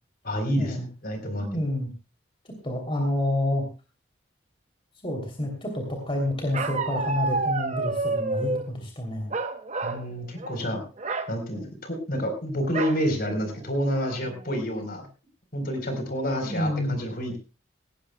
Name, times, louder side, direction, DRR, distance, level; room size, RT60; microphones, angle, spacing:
voice 1, 0.2-1.5 9.8-10.8 11.3-15.1 15.5-17.4, equal, 50° left, 6 dB, 4.1 m, -29 dB
voice 2, 1.4-1.9 2.6-3.6 5.0-9.3 16.4-17.0, left 1 dB, 30° left, 2 dB, 3.1 m, -28 dB
Bark, 6.5-8.7 9.3-10.1 10.4-10.6 11.0-11.3 12.7-13.0 13.6-13.7 14.0-14.4, right 3 dB, 35° right, 1.0 m, -29 dB
18.0 x 17.0 x 2.3 m, 0.32 s
head